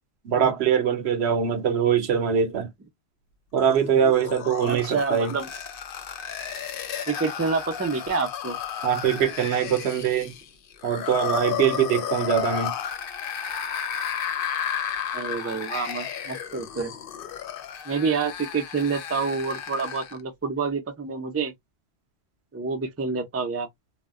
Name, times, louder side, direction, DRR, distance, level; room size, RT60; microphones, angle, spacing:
voice 1, 0.2-2.7 3.5-5.3 8.8-10.3 10.8-12.8, right 8 dB, 80° right, 1.0 m, -23 dB
sound 1, 3.6-20.2, left 8 dB, 65° left, 0.7 m, -33 dB
voice 2, 4.7-5.5 7.1-8.6 15.1-16.9 17.9-21.5 22.5-23.7, right 5 dB, 20° right, 0.4 m, -28 dB
2.1 x 2.1 x 3.6 m
omnidirectional pair, 1.1 m